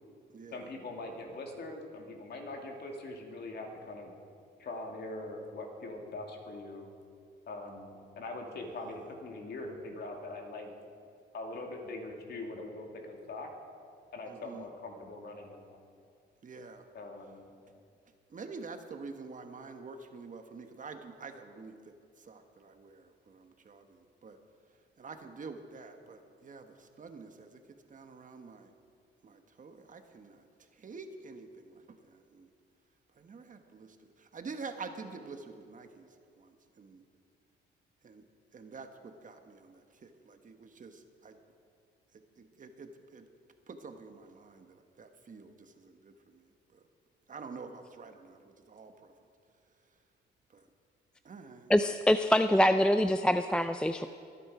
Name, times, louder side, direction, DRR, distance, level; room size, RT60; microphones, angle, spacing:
voice 1, 0.5-4.1 4.6-6.9 7.5-10.7 11.3-13.5 14.1-15.8 16.9-17.5, left 2 dB, 55° left, 2 dB, 2.6 m, -42 dB
voice 2, 14.3-14.6 16.4-16.8 18.3-21.7 22.3-24.4 25.0-27.6 27.9-28.7 29.2-30.4 30.8-32.5 33.2-36.1 36.4-36.5 36.8-37.0 38.0-38.2 38.5-41.4 42.4-43.3 43.7-46.1 47.3-49.1 50.5-50.6 51.2-51.7, right 4 dB, 40° right, 6 dB, 1.3 m, -47 dB
voice 3, 51.7-54.1, equal, 5° left, 9 dB, 0.4 m, -25 dB
22.5 x 10.0 x 5.0 m, 2.4 s
cardioid pair, 90°, 20 cm